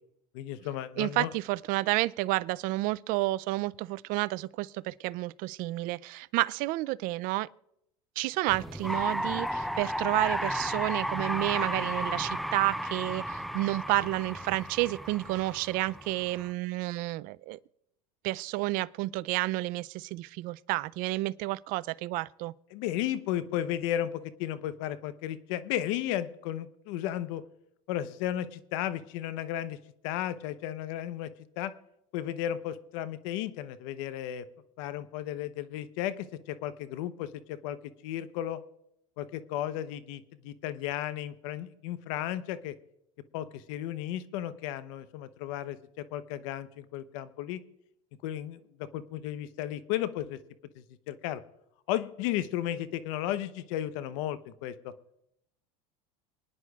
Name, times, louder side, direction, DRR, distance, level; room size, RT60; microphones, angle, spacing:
voice 1, 0.3-1.3 22.7-27.4 27.9-29.8 30.0-31.3 31.6-31.7 32.1-34.4 34.8-37.8 38.0-38.6 39.2-42.7 43.3-47.6 48.2-50.4 50.7-51.4 51.9-54.9, left 12 dB, 70° left, 0.9 m, -34 dB
voice 2, 1.0-7.5 8.2-17.6 18.2-22.5, right 19 dB, 55° right, 0.4 m, -30 dB
sound 1, 8.5-16.5, equal, ahead, 0.5 m, -34 dB
27.5 x 9.8 x 2.4 m
supercardioid pair, 115°, 17 cm